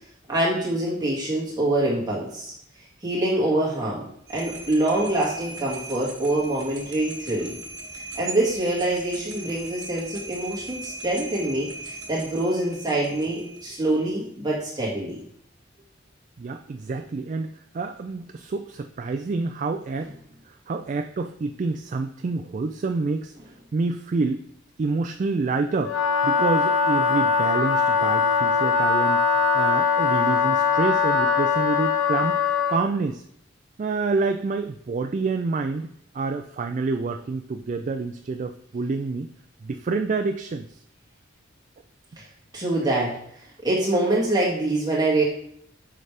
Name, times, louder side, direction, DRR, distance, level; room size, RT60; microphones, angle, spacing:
voice 1, 0.3-2.5 3.0-4.1 4.3-7.5 7.9-15.2 42.5-43.1 43.6-45.2, right 1 dB, 20° right, -6 dB, 2.0 m, -25 dB
sound 1, 4.3-14.0, right 2 dB, 65° right, 1.3 m, -39 dB
voice 2, 16.4-20.1 20.4-23.3 23.7-24.5 24.8-26.0 26.2-29.2 29.5-33.2 33.8-35.9 36.1-39.3 39.6-40.7, right 4 dB, 40° right, 6 dB, 0.3 m, -27 dB
Wind instrument woodwind instrument, 25.8-32.9, left 5 dB, 90° left, 0.7 m, -21 dB
6.6 x 5.0 x 3.3 m, 0.69 s
head